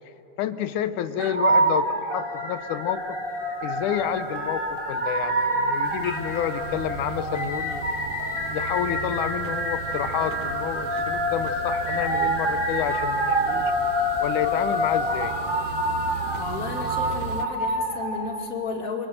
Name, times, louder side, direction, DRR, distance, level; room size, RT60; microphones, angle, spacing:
voice 1, 0.4-3.2 3.6-7.8 8.4-13.7 14.2-15.3, left 10 dB, 85° left, 11 dB, 2.3 m, -29 dB
sound 1, 1.2-18.5, right 1 dB, 25° right, 1.4 m, -28 dB
sound 2, 1.4-17.1, left 1 dB, 10° left, 3.1 m, -33 dB
sound 3, 5.8-17.5, right 7 dB, 70° right, 2.3 m, -38 dB
voice 2, 16.3-19.1, left 4 dB, 30° left, 2 dB, 2.5 m, -33 dB
28.5 x 25.5 x 7.8 m, 2.9 s
omnidirectional pair, 3.5 m